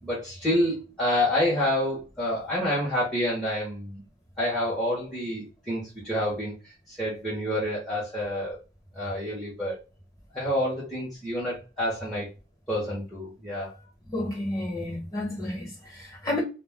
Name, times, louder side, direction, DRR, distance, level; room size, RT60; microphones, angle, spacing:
voice 1, 0.0-4.0 4.4-6.5 6.9-8.6 8.9-9.7 10.3-12.3 12.7-13.7, left 1 dB, ahead, 0.8 m, -28 dB
voice 2, 14.1-16.4, left 1 dB, 15° left, 1.1 m, -31 dB
2.2 x 2.2 x 3.4 m
head